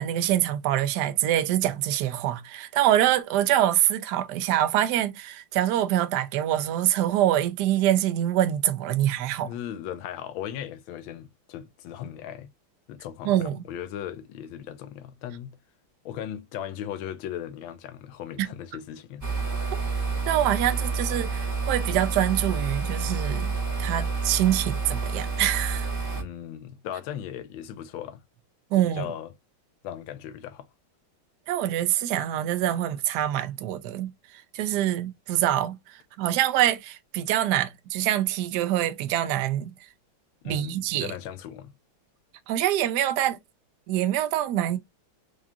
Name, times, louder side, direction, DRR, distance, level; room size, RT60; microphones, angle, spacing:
voice 1, 0.0-9.5 13.2-13.6 18.4-18.5 20.3-25.9 28.7-29.1 31.5-39.7 40.4-41.1 42.5-43.4 43.9-44.8, right 12 dB, 70° right, 1.0 m, -25 dB
voice 2, 9.4-12.5 12.9-15.6 16.0-19.3 26.1-28.2 28.9-29.3 29.8-30.7 40.4-41.7, left 10 dB, 75° left, 1.4 m, -37 dB
sound 1, 19.2-26.2, right 4 dB, 15° right, 0.8 m, -29 dB
4.8 x 2.4 x 2.8 m
omnidirectional pair, 2.3 m